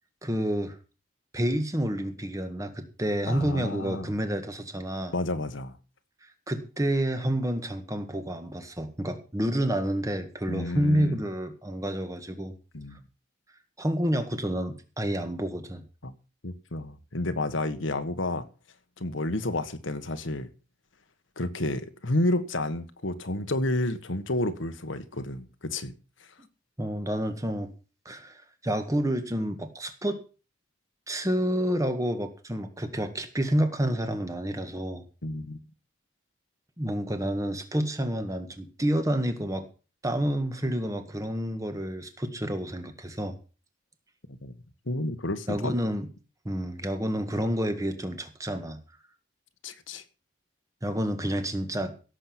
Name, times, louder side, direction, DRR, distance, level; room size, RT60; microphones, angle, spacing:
voice 1, 0.2-0.8 1.3-5.1 6.5-12.5 13.8-15.9 26.8-27.7 28.0-30.2 31.1-35.0 36.8-39.6 40.0-43.4 45.5-46.1 46.4-48.8 50.8-51.9, equal, 15° right, 1.7 m, -29 dB
voice 2, 3.3-4.1 5.1-5.8 10.5-11.2 12.7-13.0 16.0-16.1 16.4-18.5 19.0-20.5 21.4-25.9 35.2-35.6 44.4-44.5 44.9-45.7 49.6-50.0, left 2 dB, 80° left, 1.5 m, -30 dB
16.5 x 7.6 x 6.2 m
head